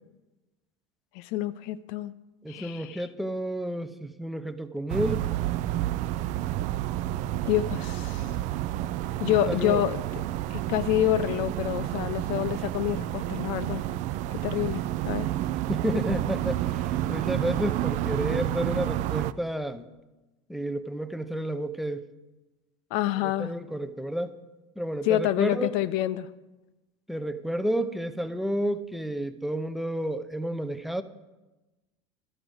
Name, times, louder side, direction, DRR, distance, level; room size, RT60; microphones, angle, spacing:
voice 1, 1.1-2.1 2.5-3.0 7.5-8.3 9.2-10.0 10.5-13.8 14.3-15.3 22.9-23.5 25.0-26.3, left 13 dB, 65° left, 15 dB, 0.6 m, -27 dB
voice 2, 2.4-5.3 9.3-9.8 15.7-16.8 17.1-19.9 20.5-22.0 23.2-24.3 24.8-25.7 27.1-31.0, equal, ahead, 9 dB, 0.6 m, -31 dB
sound 1, 4.9-19.3, right 13 dB, 55° right, 0.4 m, -30 dB
12.0 x 4.9 x 7.9 m, 1.1 s
supercardioid pair, 110°, 15 cm